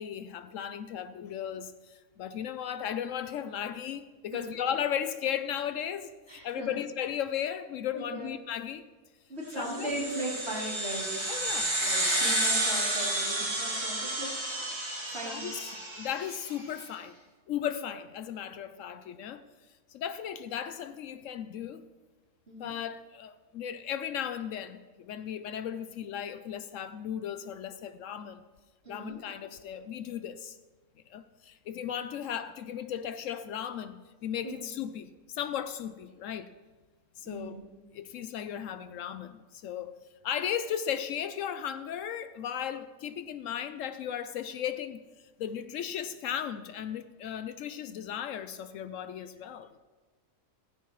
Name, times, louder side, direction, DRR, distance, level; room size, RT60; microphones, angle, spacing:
voice 1, 0.0-8.8 9.5-9.9 11.3-11.8 15.3-17.2 17.5-19.4 19.9-21.8 22.6-28.4 28.9-30.6 31.1-36.5 37.2-37.6 37.9-39.9 40.2-45.0 45.4-49.7, left 9 dB, 70° left, 0.9 m, -36 dB
voice 2, 6.3-6.7 7.9-8.3 9.3-11.1 11.8-14.3 15.0-15.5 22.5-22.7 28.8-29.2 34.4-34.7 37.2-37.6, right 1 dB, 50° right, 3.4 m, -38 dB
sound 1, 9.6-16.4, right 1 dB, 20° right, 1.6 m, -31 dB
15.0 x 14.5 x 3.1 m
omnidirectional pair, 1.4 m